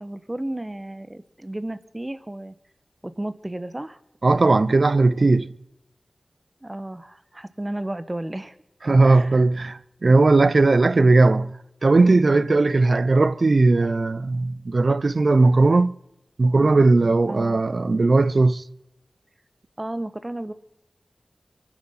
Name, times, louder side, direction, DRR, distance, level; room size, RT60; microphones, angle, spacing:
voice 1, 0.0-2.5 3.0-4.0 6.6-8.6 9.0-9.5 17.3-17.6 19.8-20.5, right 1 dB, 25° right, 1.3 m, -33 dB
voice 2, 4.2-5.5 8.8-11.5 11.8-16.0 16.4-18.6, right 3 dB, 65° right, 0.6 m, -18 dB
24.0 x 10.5 x 5.9 m
cardioid pair, 40°, 0 cm